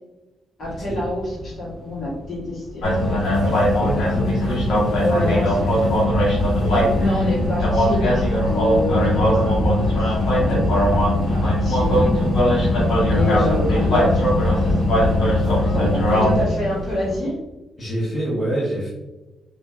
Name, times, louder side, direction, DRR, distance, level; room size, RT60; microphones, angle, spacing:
voice 1, 0.6-2.9 5.0-5.8 6.7-12.1 13.1-14.4 15.5-17.3, left 1 dB, 45° left, -6 dB, 1.4 m, -27 dB
sound 1, 0.6-17.2, left 2 dB, 5° right, 0.6 m, -28 dB
sound 2, 2.8-16.4, equal, 75° left, 1.2 m, -20 dB
voice 2, 3.4-4.3 4.8-5.9 6.6-7.0 13.1-14.1 17.8-18.9, right 1 dB, 25° left, -10 dB, 1.0 m, -28 dB
3.8 x 2.6 x 2.2 m, 1.1 s
cardioid pair, 160°, 0 cm